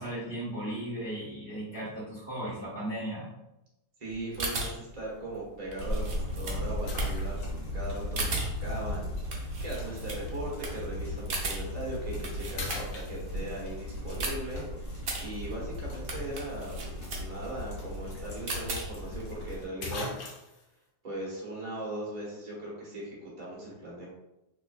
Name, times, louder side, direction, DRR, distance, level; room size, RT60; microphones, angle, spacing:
voice 1, 0.0-3.3, right 1 dB, 10° left, -13 dB, 1.3 m, -36 dB
voice 2, 4.0-20.1 21.0-24.1, right 1 dB, 30° right, -5 dB, 1.0 m, -39 dB
sound 1, 4.1-13.2 13.6-19.2, right 2 dB, 55° right, 0.8 m, -38 dB
sound 2, 4.4-4.7 5.3-5.4 6.9-7.7 9.2-9.3 11.4-11.6 12.1-12.2 12.6-13.6 17.8-17.9 18.1-18.2 19.3-19.4 19.8-20.7, left 3 dB, 85° left, 1.3 m, -40 dB
sound 3, 5.8-19.6, left 1 dB, 55° left, 1.4 m, -37 dB
3.7 x 3.1 x 2.4 m, 0.93 s
omnidirectional pair, 1.8 m